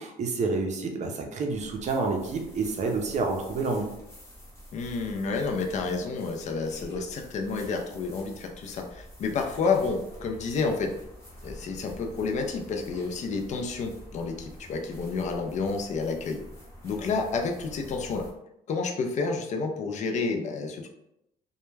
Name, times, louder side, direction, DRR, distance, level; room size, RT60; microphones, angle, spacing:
voice 1, 0.0-3.9, right 3 dB, 45° right, 3 dB, 0.5 m, -29 dB
sound 1, 1.5-18.3, equal, 15° left, 0.8 m, -47 dB
voice 2, 4.7-10.9 11.4-16.4 16.8-18.3 18.7-20.9, left 4 dB, 45° left, 3 dB, 0.5 m, -30 dB
2.2 x 2.1 x 3.1 m, 0.84 s
cardioid pair, 110°, 17 cm